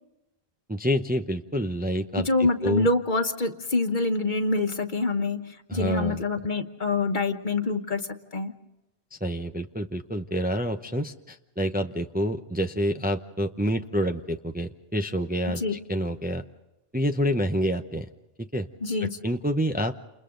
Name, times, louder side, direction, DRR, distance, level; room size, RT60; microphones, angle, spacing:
voice 1, 0.7-2.3 2.6-2.9 5.7-6.2 9.1-15.6 15.9-16.4 16.9-18.1 18.4-18.7 19.2-19.9, equal, 10° right, 6 dB, 0.7 m, -27 dB
voice 2, 2.2-8.5 15.5-15.8 18.8-19.2, left 3 dB, 50° left, 7 dB, 1.4 m, -26 dB
29.0 x 28.5 x 3.8 m, 0.97 s
omnidirectional pair, 1.0 m